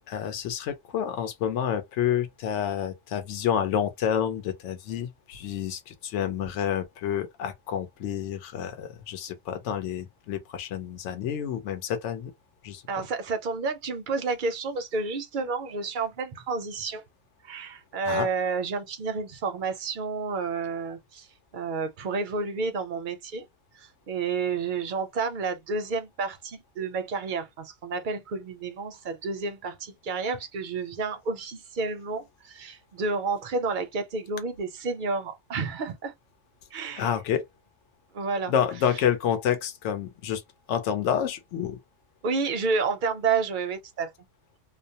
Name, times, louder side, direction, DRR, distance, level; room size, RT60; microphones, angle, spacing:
voice 1, 0.1-12.3 12.6-12.8 18.1-18.3 37.0-37.5 38.5-40.4 40.7-41.8, left 9 dB, 75° left, 0.9 m, -29 dB
voice 2, 12.9-17.0 17.4-21.3 21.5-23.5 23.7-36.1 36.7-37.1 38.1-38.5 42.2-44.1, right 4 dB, 60° right, 0.5 m, -30 dB
2.3 x 2.0 x 2.6 m
omnidirectional pair, 1.2 m